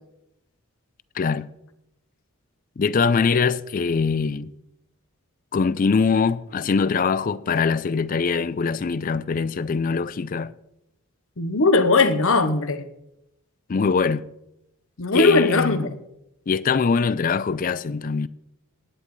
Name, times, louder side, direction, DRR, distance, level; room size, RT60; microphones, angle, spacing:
voice 1, 1.2-1.5 2.8-4.5 5.5-10.5 13.7-14.3 15.1-15.9 16.5-18.3, left 5 dB, 40° left, 0.4 m, -22 dB
voice 2, 11.4-12.8 15.0-15.9, left 3 dB, 60° left, 0.9 m, -19 dB
17.0 x 9.8 x 3.2 m
head